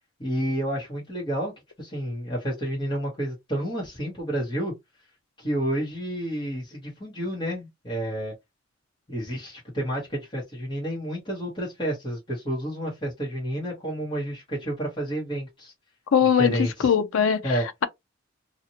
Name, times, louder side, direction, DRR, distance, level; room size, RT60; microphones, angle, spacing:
voice 1, 0.2-1.5 1.8-4.7 5.4-8.3 9.1-15.7 16.4-16.9 17.4-17.6, equal, 25° left, 1.1 m, -30 dB
voice 2, 16.1-17.4, left 7 dB, 90° left, 0.5 m, -21 dB
2.7 x 2.4 x 2.8 m
head